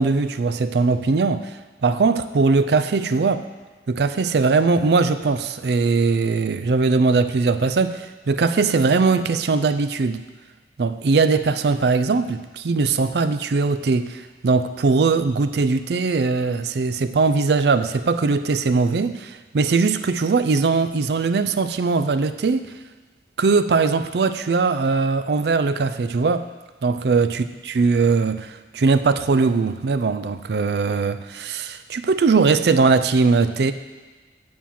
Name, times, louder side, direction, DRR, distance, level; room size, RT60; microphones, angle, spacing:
voice 1, 0.0-1.5 1.8-3.4 3.9-10.2 10.8-22.6 23.4-26.5 26.8-33.7, right 4 dB, 75° right, 11 dB, 0.4 m, -20 dB
9.3 x 4.3 x 7.4 m, 1.3 s
head